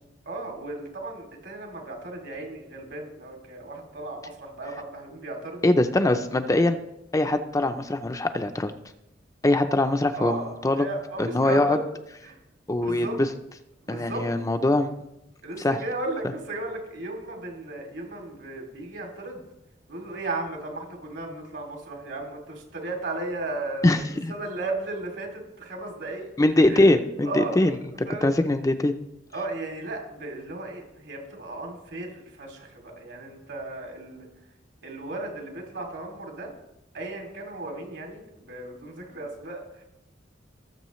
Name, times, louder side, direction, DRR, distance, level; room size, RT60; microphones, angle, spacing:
voice 1, 0.3-5.6 10.1-11.8 12.2-12.4 12.8-13.2 13.8-14.3 15.4-19.4 19.9-26.3 26.7-26.9 27.2-27.6 28.0-28.3 29.3-34.3 34.8-36.5 36.9-39.8, right 2 dB, 75° right, 1 dB, 2.7 m, -35 dB
voice 2, 5.6-6.8 7.1-8.7 9.4-10.4 10.6-10.9 11.2-11.8 12.7-13.1 13.9-15.0 15.6-15.8 23.8-24.3 26.4-27.7 28.2-28.9, left 1 dB, 20° left, 7 dB, 0.5 m, -22 dB
18.5 x 7.3 x 3.1 m, 0.88 s
head